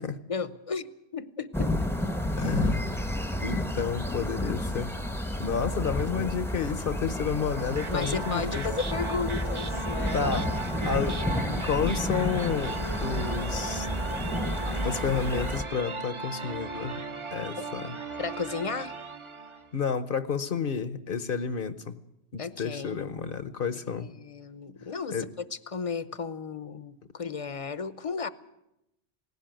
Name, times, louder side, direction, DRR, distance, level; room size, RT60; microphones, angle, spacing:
voice 1, 0.3-1.7 7.9-10.3 10.8-10.9 17.6-17.7 18.2-19.0 22.4-23.1 24.0-25.3 25.7-28.3, left 5 dB, 35° left, 15 dB, 0.8 m, -34 dB
sound 1, 1.5-15.6, left 1 dB, ahead, 0.9 m, -31 dB
voice 2, 2.4-4.9 5.4-8.7 10.1-10.5 10.8-11.2 11.6-13.9 14.8-17.0 17.3-18.0 19.7-22.0 22.3-24.1 25.1-25.3, left 6 dB, 60° left, 13 dB, 1.0 m, -31 dB
sound 2, 7.5-19.7, right 3 dB, 30° right, 0.9 m, -36 dB
18.5 x 16.0 x 9.0 m, 0.86 s
omnidirectional pair, 1.1 m